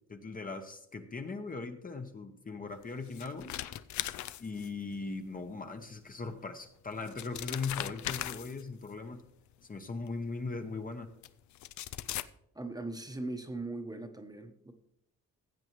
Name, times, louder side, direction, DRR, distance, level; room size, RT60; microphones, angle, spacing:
voice 1, 0.1-3.6 4.4-9.2 9.6-11.1, left 4 dB, 30° left, 6 dB, 0.9 m, -39 dB
sound 1, 2.8-4.9 6.3-6.4 6.9-8.9 10.1-10.2 11.2-11.3 11.5-12.2, left 13 dB, 70° left, 0.5 m, -39 dB
voice 2, 12.5-14.7, right 2 dB, 15° right, 6 dB, 1.0 m, -39 dB
15.5 x 7.8 x 3.1 m, 0.75 s
cardioid pair, 90°, 30 cm